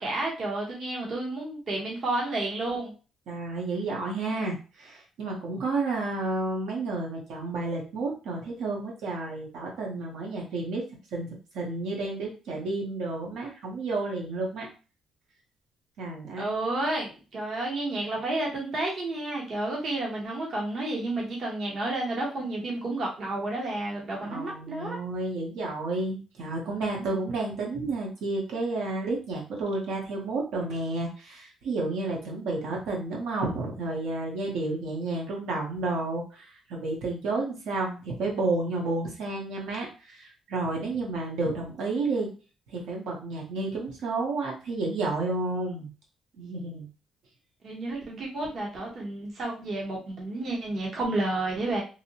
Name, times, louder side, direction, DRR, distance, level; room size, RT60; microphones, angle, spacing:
voice 1, 0.0-2.9 16.4-25.0 27.0-27.2 47.6-51.8, right 2 dB, 40° right, -2 dB, 0.7 m, -31 dB
voice 2, 3.3-10.8 11.1-14.7 16.0-16.6 24.2-42.3 42.7-45.9 46.4-46.9, right 2 dB, 75° right, -1 dB, 0.8 m, -31 dB
2.6 x 2.0 x 2.7 m, 0.35 s
cardioid pair, 175°, 0 cm